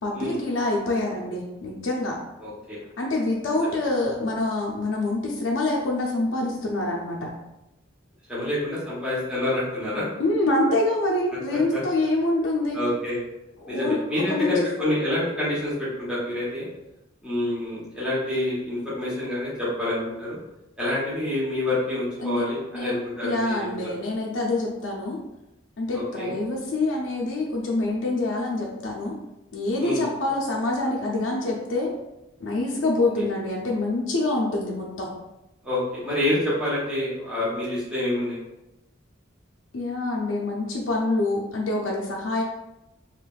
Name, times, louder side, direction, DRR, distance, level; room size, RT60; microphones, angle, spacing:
voice 1, 0.0-2.2 3.0-7.3 10.2-12.8 13.6-14.5 22.2-22.4 22.7-22.9 23.2-25.2 25.8-29.2 29.5-31.9 32.4-35.1 39.7-42.4, left 2 dB, 80° left, -2 dB, 0.5 m, -26 dB
voice 2, 2.4-2.8 8.3-10.1 11.5-11.8 12.7-13.2 13.6-16.7 17.2-20.4 20.8-23.9 25.9-26.3 29.8-30.0 35.6-38.4, left 1 dB, 5° right, -10 dB, 1.0 m, -27 dB
3.2 x 2.9 x 2.4 m, 0.93 s
head